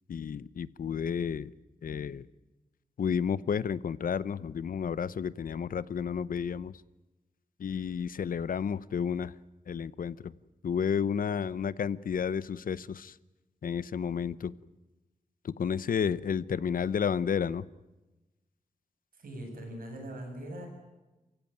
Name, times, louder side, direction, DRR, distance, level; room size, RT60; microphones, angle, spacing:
voice 1, 0.1-1.5 1.8-2.3 3.0-6.8 7.6-9.3 9.7-10.3 10.6-13.2 13.6-14.5 15.4-17.7, left 7 dB, 75° left, 18 dB, 0.8 m, -31 dB
voice 2, 19.1-20.7, right 1 dB, 85° right, 3 dB, 7.5 m, -41 dB
28.0 x 16.0 x 9.3 m, 1.1 s
wide cardioid pair, 140°, 14 cm